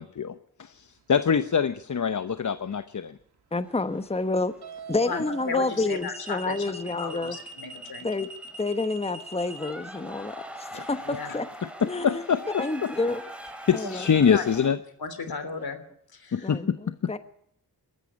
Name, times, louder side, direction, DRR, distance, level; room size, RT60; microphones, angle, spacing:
voice 1, 0.0-3.2 10.7-10.9 11.8-12.9 13.7-14.8 16.3-17.1, left 7 dB, 50° left, 12 dB, 0.9 m, -25 dB
sound 1, 1.3-1.6 4.6-9.7, right 3 dB, 85° right, 2.4 m, -41 dB
voice 2, 3.5-4.5 4.9-7.4 8.0-8.3 8.6-11.5 11.8-12.2 12.6-13.2 13.7-14.1 15.6-15.7 16.4-17.2, left 3 dB, 15° left, 11 dB, 1.0 m, -29 dB
sound 2, 3.6-14.7, equal, 5° right, 3.7 m, -44 dB
voice 3, 5.0-6.7 7.0-8.1 11.0-11.4 13.8-13.9 14.3-14.4 15.0-15.8 16.1-16.5, left 4 dB, 70° left, 10 dB, 3.2 m, -35 dB
20.5 x 14.0 x 9.9 m, 0.71 s
cardioid pair, 65°, 38 cm